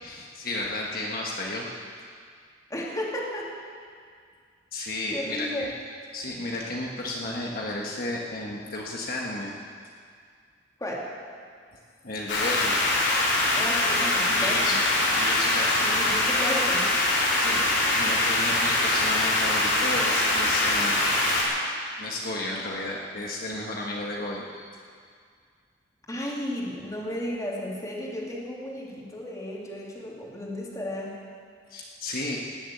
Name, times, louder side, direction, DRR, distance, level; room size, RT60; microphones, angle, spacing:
voice 1, 0.0-1.7 4.7-5.7 6.1-9.5 12.0-12.8 14.3-15.9 17.0-21.0 21.3-21.5 22.0-24.6 31.7-32.4, left 2 dB, 55° left, -2 dB, 1.5 m, -33 dB
voice 2, 2.7-3.5 5.1-5.7 10.8-11.0 13.5-14.8 15.8-16.9 26.1-31.2, left 1 dB, 20° left, -4 dB, 2.7 m, -33 dB
sound 1, 12.3-21.4, left 2 dB, 90° left, 3.7 m, -23 dB
19.0 x 7.3 x 8.5 m, 2.1 s
head